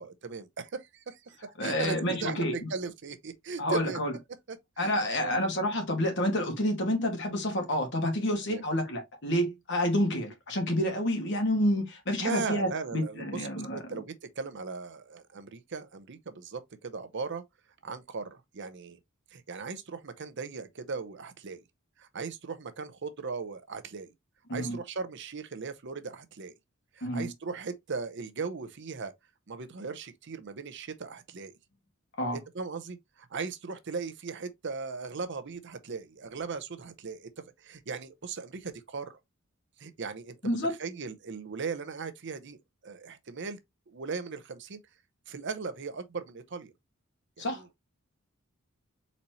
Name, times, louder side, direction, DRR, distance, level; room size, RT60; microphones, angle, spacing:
voice 1, 0.0-4.0 4.5-5.4 8.5-8.6 12.2-13.2 13.7-17.4 17.8-19.0 19.3-21.6 22.0-24.1 24.5-26.5 26.9-29.1 29.5-31.5 32.3-37.3 37.6-39.2 39.8-42.6 42.8-43.6 43.9-44.8 45.3-46.7 47.4-47.6, right 4 dB, 60° right, 0.7 m, -38 dB
voice 2, 1.6-2.7 3.6-4.1 4.8-14.0 24.5-24.8 27.0-27.3 32.2-32.4 40.4-40.7 47.4-47.8, equal, 60° left, 1.9 m, -29 dB
4.2 x 4.1 x 3.0 m
head